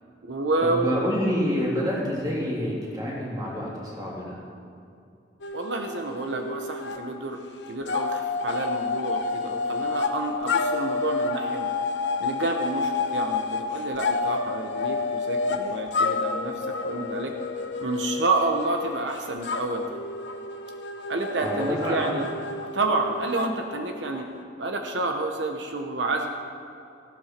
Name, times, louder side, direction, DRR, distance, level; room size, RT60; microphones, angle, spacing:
voice 1, 0.2-1.1 5.5-7.4 7.7-11.7 12.2-17.3 17.8-20.0 21.1-22.3 22.7-24.3 24.6-26.3, right 2 dB, 85° right, 4 dB, 1.0 m, -29 dB
voice 2, 0.8-4.4 21.4-22.1, equal, 20° right, -5 dB, 2.9 m, -27 dB
sound 1, 5.4-7.0 7.3-24.4, left 4 dB, 80° left, 0.8 m, -30 dB
15.5 x 12.5 x 4.5 m, 2.5 s
head